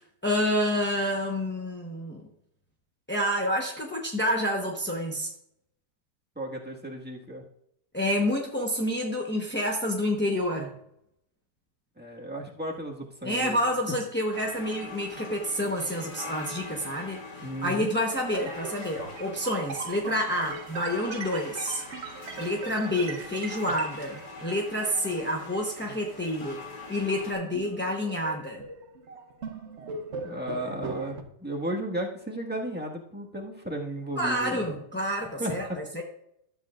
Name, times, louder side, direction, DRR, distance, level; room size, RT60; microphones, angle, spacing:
voice 1, 0.0-2.2 3.1-5.3 7.9-10.7 13.2-21.8 22.4-26.6 26.9-28.6 34.2-35.7 35.9-36.0, equal, 10° left, -1 dB, 0.5 m, -28 dB
voice 2, 6.3-7.4 12.0-13.6 17.4-17.9 30.2-34.6 35.4-35.8, right 1 dB, 5° right, -3 dB, 1.4 m, -34 dB
sound 1, 14.3-27.3, left 3 dB, 70° left, 2.5 m, -43 dB
sound 2, 18.3-26.6 27.2-31.2, right 4 dB, 50° right, 1.0 m, -40 dB
13.0 x 8.1 x 2.5 m, 0.76 s
omnidirectional pair, 1.8 m